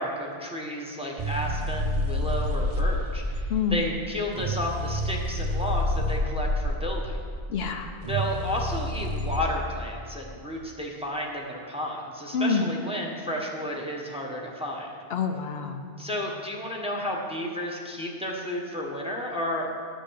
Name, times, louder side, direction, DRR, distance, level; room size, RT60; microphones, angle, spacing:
voice 1, 0.0-3.4 3.7-7.2 8.1-14.9 16.0-19.7, equal, 5° right, -1 dB, 1.3 m, -32 dB
sound 1, 1.2-9.4, left 1 dB, 40° right, 0.6 m, -28 dB
voice 2, 3.5-3.9 7.5-8.0 12.3-12.7 15.1-15.9, left 5 dB, 75° left, 5 dB, 0.9 m, -27 dB
11.5 x 6.3 x 6.4 m, 2.1 s
omnidirectional pair, 1.1 m